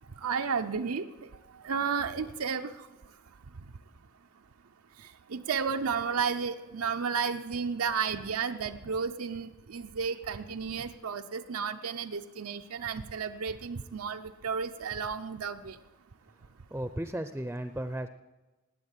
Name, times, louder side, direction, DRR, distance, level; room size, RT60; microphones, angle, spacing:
voice 1, 0.2-1.1 1.6-2.7 5.3-15.8, right 6 dB, 90° right, 6 dB, 0.7 m, -32 dB
voice 2, 16.7-18.1, right 1 dB, 10° right, 10 dB, 0.5 m, -35 dB
18.5 x 9.2 x 8.1 m, 1.1 s
head